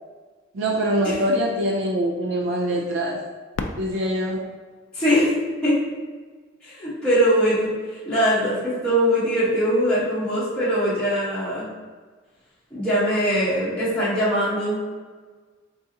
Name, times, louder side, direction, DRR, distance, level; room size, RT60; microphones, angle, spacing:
voice 1, 0.5-3.2 3.8-4.5, equal, 65° right, 0 dB, 0.4 m, -24 dB
Fireworks, 3.5-6.3 7.0-7.1 7.8-8.2 10.1-10.2, left 3 dB, 75° left, 0.4 m, -37 dB
voice 2, 4.9-5.3 5.6-5.8 6.7-7.7 8.1-11.7 12.7-14.8, equal, 5° left, -13 dB, 1.2 m, -21 dB
4.1 x 3.5 x 2.8 m, 1.4 s
head